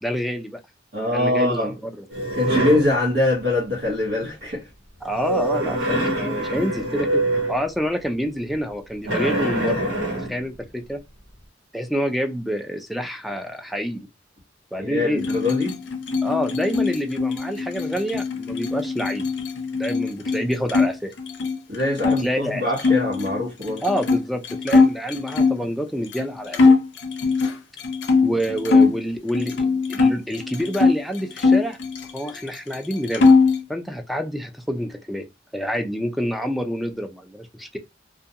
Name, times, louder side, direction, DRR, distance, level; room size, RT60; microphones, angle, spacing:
voice 1, 0.0-0.6 1.0-2.0 5.0-9.8 10.2-11.0 11.7-14.1 14.7-15.2 16.2-19.2 19.8-21.1 22.0-22.7 23.8-26.8 28.2-31.8 32.1-33.3 33.7-35.3 35.5-37.8, equal, ahead, 0.3 m, -27 dB
voice 2, 0.9-1.7 2.4-4.6 14.8-15.7 21.7-23.8 28.2-28.3, left 2 dB, 65° right, 0.9 m, -23 dB
sound 1, 2.1-2.9 5.1-7.7 9.0-10.4, right 1 dB, 85° right, 1.1 m, -24 dB
sound 2, 15.2-20.9 21.2-22.2 22.8-25.6 26.1-26.2 26.5-29.0 29.3-31.0 31.4-32.5 32.7-33.6, left 4 dB, 70° left, 0.5 m, -20 dB
2.4 x 2.2 x 2.7 m
head